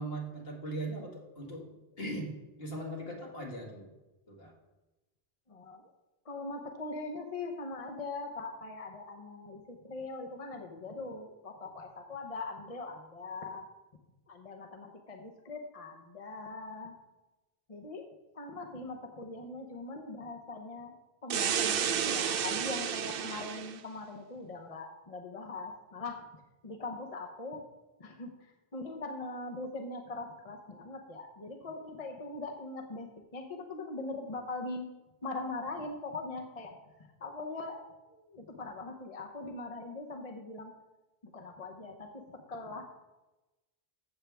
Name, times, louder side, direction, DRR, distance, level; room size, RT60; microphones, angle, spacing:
voice 1, 0.0-1.7 2.0-3.9 4.3-4.5, right 1 dB, 70° left, -1 dB, 2.3 m, -39 dB
voice 2, 5.5-5.9 6.2-13.7 14.3-16.9 17.7-18.1 18.3-20.9 21.2-26.2 26.6-27.6 28.0-34.9 35.2-37.8 38.1-40.7 41.2-42.8, left 3 dB, 35° left, 3 dB, 0.9 m, -41 dB
sound 1, 21.3-23.8, right 9 dB, 65° right, 0.8 m, -31 dB
15.0 x 7.3 x 3.4 m, 1.1 s
omnidirectional pair, 1.0 m